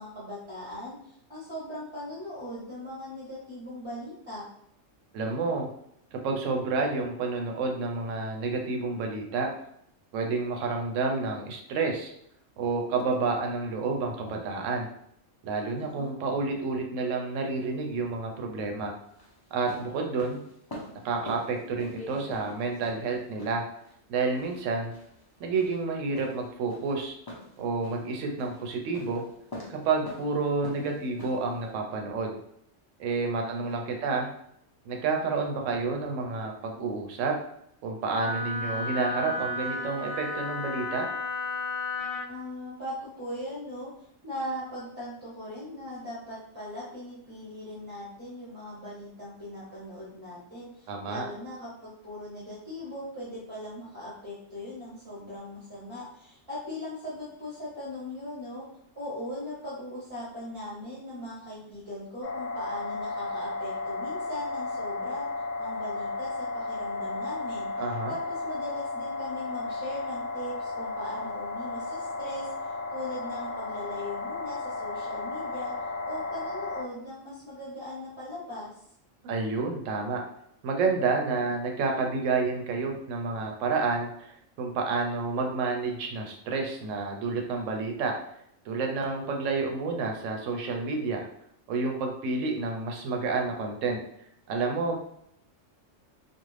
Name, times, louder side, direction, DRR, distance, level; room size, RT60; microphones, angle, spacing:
voice 1, 0.0-4.5 15.7-16.1 33.4-34.2 42.3-43.9 44.2-58.6 58.9-65.3 65.6-75.7 76.0-78.8, left 1 dB, 25° right, -10 dB, 0.9 m, -39 dB
voice 2, 5.1-5.7 6.1-9.5 10.1-12.1 12.6-14.9 15.4-18.9 19.5-20.4 21.0-23.6 24.1-24.9 25.4-27.1 27.6-29.2 29.7-32.4 33.0-34.3 34.9-37.3 37.8-41.1 50.9-51.3 67.8-68.1 79.2-80.2 80.6-88.1 88.7-91.2 91.7-94.0 94.5-95.0, right 4 dB, 80° right, 2 dB, 0.9 m, -29 dB
sound 1, 17.3-31.7, left 1 dB, 30° left, 0.5 m, -46 dB
Wind instrument woodwind instrument, 38.1-42.3, left 3 dB, 55° left, 0.8 m, -33 dB
sound 2, 62.2-76.8, left 3 dB, 85° left, 0.9 m, -34 dB
2.5 x 2.3 x 3.1 m, 0.72 s
omnidirectional pair, 1.3 m